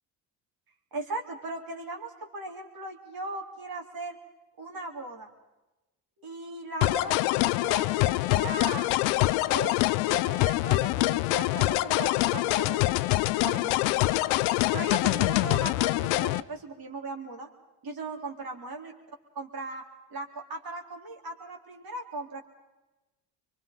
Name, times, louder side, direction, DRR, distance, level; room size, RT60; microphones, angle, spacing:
voice 1, 0.9-4.2 4.6-5.3 6.2-8.9 9.5-9.8 10.1-13.1 13.4-13.8 14.4-17.5 17.8-18.9 19.4-19.8 20.1-22.4, right 2 dB, 45° right, 3 dB, 3.7 m, -38 dB
sound 1, 6.8-16.4, left 18 dB, 80° left, 0.7 m, -25 dB
24.0 x 24.0 x 5.3 m, 1.0 s
hypercardioid pair, 60°, 48 cm